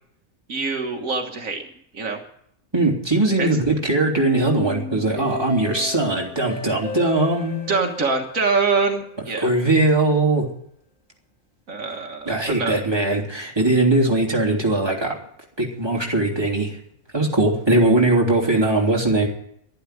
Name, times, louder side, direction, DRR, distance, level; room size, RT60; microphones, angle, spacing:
voice 1, 0.5-1.6 1.9-2.2 3.4-3.5 7.7-9.5 11.7-12.8, right 4 dB, 70° right, 2 dB, 1.9 m, -24 dB
voice 2, 2.7-7.9 9.4-10.5 12.2-15.2 15.6-16.8 17.1-19.3, right 2 dB, 15° right, -1 dB, 3.2 m, -20 dB
sound 1, 4.2-9.2, left 5 dB, 80° left, 1.5 m, -35 dB
11.5 x 11.5 x 9.1 m, 0.72 s
omnidirectional pair, 1.5 m